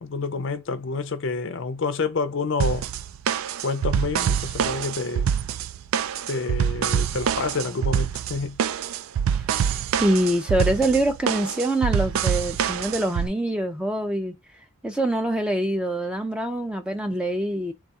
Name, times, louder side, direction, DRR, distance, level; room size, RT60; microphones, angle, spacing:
voice 1, 0.0-2.9 3.6-5.3 6.3-8.6, left 4 dB, 55° left, 0.5 m, -28 dB
sound 1, 2.6-13.3, right 8 dB, 70° right, 0.3 m, -25 dB
voice 2, 9.7-14.3 14.8-17.7, right 1 dB, 5° right, 0.4 m, -24 dB
4.0 x 2.4 x 3.6 m
head